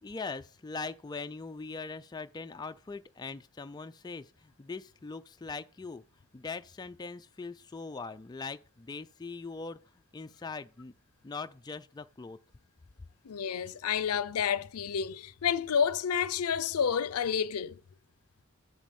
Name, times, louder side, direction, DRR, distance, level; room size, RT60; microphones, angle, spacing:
voice 1, 0.0-6.0 6.3-9.8 10.1-10.9 11.2-12.4, left 4 dB, 20° left, 0.3 m, -41 dB
voice 2, 13.2-17.8, left 7 dB, 90° left, 0.5 m, -30 dB
7.3 x 6.2 x 5.2 m
head